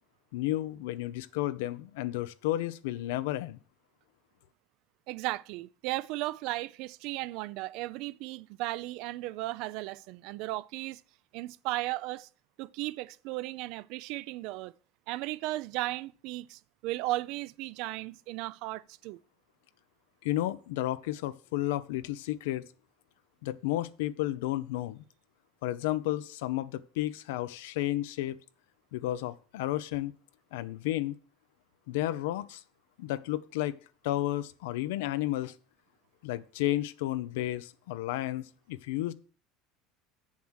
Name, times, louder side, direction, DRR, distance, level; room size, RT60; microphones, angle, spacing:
voice 1, 0.3-3.6 20.2-22.6 23.4-25.0 25.6-28.4 28.9-30.1 30.5-31.1 31.9-32.6 33.0-33.7 34.0-35.5 36.2-39.1, left 15 dB, 85° left, 0.6 m, -32 dB
voice 2, 5.1-11.0 11.3-12.3 12.6-14.7 15.1-19.2, right 18 dB, 65° right, 0.5 m, -35 dB
7.3 x 7.2 x 6.4 m
supercardioid pair, 125°, 0 cm